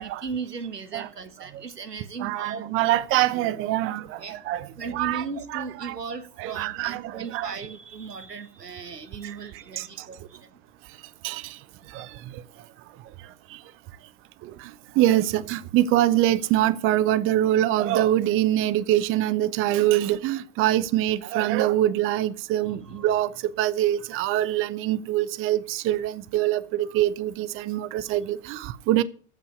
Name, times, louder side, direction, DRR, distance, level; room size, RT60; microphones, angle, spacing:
voice 1, 0.0-2.8 3.8-4.4 4.7-10.5 11.8-11.9 14.9-15.0 19.6-19.8 22.6-23.1, right 5 dB, 85° right, 1.4 m, -37 dB
voice 2, 2.2-4.7 4.9-5.2 5.5-6.0 6.4-7.5 9.2-9.4 9.8-10.1 11.2-11.6 11.9-12.4 13.2-13.6 14.4-29.0, right 13 dB, 25° right, 0.7 m, -24 dB
14.5 x 5.5 x 8.2 m
figure-of-eight pair, 90°, 47 cm